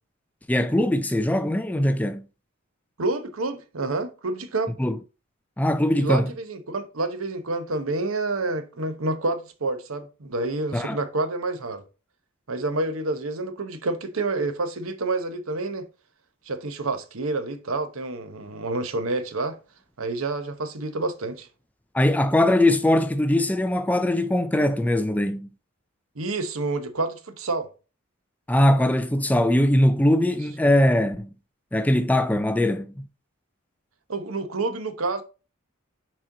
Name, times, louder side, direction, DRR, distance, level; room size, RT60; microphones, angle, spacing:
voice 1, 0.5-2.2 4.8-5.0 5.6-6.3 10.7-11.0 21.9-25.5 28.5-31.3 31.7-33.1, left 1 dB, 10° left, 0.4 m, -21 dB
voice 2, 3.0-4.7 6.0-11.8 12.5-15.9 16.5-19.6 20.0-21.5 26.2-27.7 34.1-35.2, right 2 dB, 85° right, 1.0 m, -28 dB
6.2 x 4.3 x 3.8 m
head